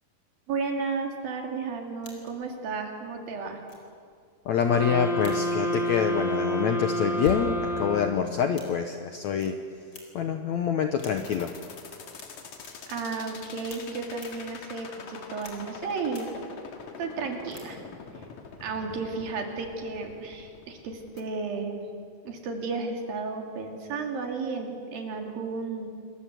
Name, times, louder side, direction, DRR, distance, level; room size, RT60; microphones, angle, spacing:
voice 1, 0.5-3.6 12.9-16.3 17.0-17.8 18.6-21.9 22.2-25.9, right 4 dB, 65° right, 3 dB, 4.3 m, -33 dB
sound 1, 2.0-2.5 3.1-3.2 3.7-3.9 5.2-5.5 7.0-7.6 8.5-8.8 9.4-9.5 9.9-10.3 11.0-11.5 12.1-12.3 12.6-12.7 13.7-13.8 14.1-14.3 15.4-15.8 16.1-16.2 17.5-17.6, left 2 dB, 30° left, 4.8 m, -41 dB
voice 2, 4.5-9.6 10.2-11.5, left 7 dB, 70° left, 6 dB, 1.8 m, -26 dB
sound 2, 4.6-8.5, equal, ahead, 3.4 m, -29 dB
sound 3, 11.2-21.2, left 5 dB, 55° left, 3.0 m, -44 dB
28.0 x 22.0 x 7.8 m, 2.2 s
omnidirectional pair, 4.4 m